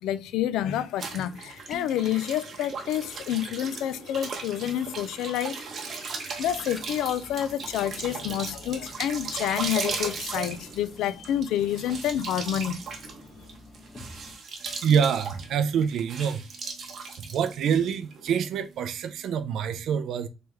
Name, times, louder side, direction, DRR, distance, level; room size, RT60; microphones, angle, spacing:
voice 1, 0.0-5.6 6.4-12.8, left 11 dB, 85° left, 0.4 m, -28 dB
sound 1, 1.0-18.4, right 4 dB, 45° right, 0.8 m, -37 dB
sound 2, 1.7-2.1 6.6-6.9, left 2 dB, 15° left, 0.5 m, -44 dB
sound 3, 6.4-14.3, left 1 dB, 35° left, 1.3 m, -49 dB
voice 2, 14.8-16.5 17.2-20.3, right 7 dB, 60° right, 0.4 m, -26 dB
3.4 x 3.3 x 3.0 m
cardioid pair, 150°, 0 cm